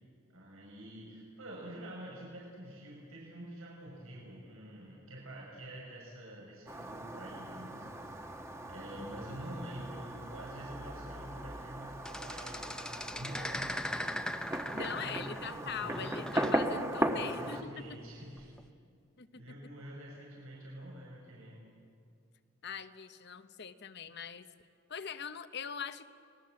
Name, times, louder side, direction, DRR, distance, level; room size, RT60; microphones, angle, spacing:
voice 1, 0.3-8.4 8.7-14.1 14.5-16.2 17.1-18.5 19.3-21.6, right 1 dB, 85° right, -3 dB, 5.9 m, -47 dB
Fireworks, 6.7-17.6, right 1 dB, 15° right, 1.3 m, -38 dB
sound 1, 7.3-16.0, equal, 55° right, 2.6 m, -56 dB
sound 2, 12.1-15.5 15.8-16.6 18.4-18.6, left 1 dB, 5° left, 0.7 m, -40 dB
voice 2, 14.7-17.8 19.2-19.5 22.6-24.5 24.9-26.1, left 6 dB, 50° left, 11 dB, 1.0 m, -42 dB
30.0 x 21.0 x 7.7 m, 2.3 s
head